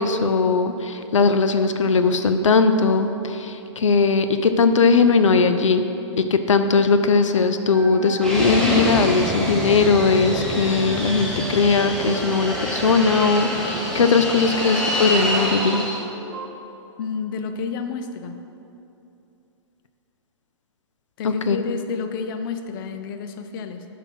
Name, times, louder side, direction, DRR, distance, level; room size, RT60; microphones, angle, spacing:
voice 1, 0.0-5.9 6.2-15.8 21.5-21.6, left 4 dB, 90° left, 9 dB, 0.5 m, -19 dB
sound 1, 7.2-16.6, right 4 dB, 55° right, 0.9 m, -38 dB
Fixed-wing aircraft airplane, 8.2-16.0, equal, 5° left, 1.1 m, -26 dB
voice 2, 17.0-18.4 21.2-23.9, left 5 dB, 45° left, 8 dB, 0.6 m, -30 dB
7.1 x 5.7 x 5.9 m, 2.8 s
hypercardioid pair, 135°, 16 cm